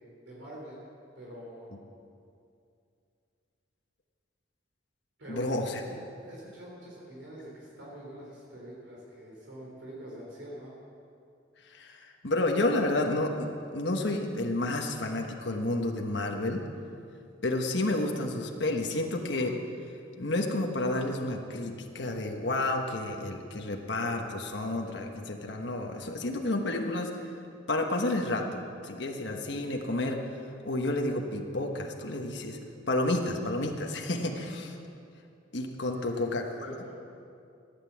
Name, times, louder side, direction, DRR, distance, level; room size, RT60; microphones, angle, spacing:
voice 1, 0.2-0.8 1.2-1.7 5.2-5.5 5.8-5.9 6.2-10.7 35.9-36.3 36.6-36.9, right 1 dB, 75° right, -4 dB, 3.3 m, -45 dB
voice 2, 5.3-5.8 11.7-16.6 17.4-19.6 20.2-27.1 27.7-30.2 30.6-32.6 32.9-34.7 35.5-36.8, left 2 dB, 65° left, 2 dB, 1.2 m, -30 dB
15.0 x 9.9 x 7.4 m, 2.5 s
head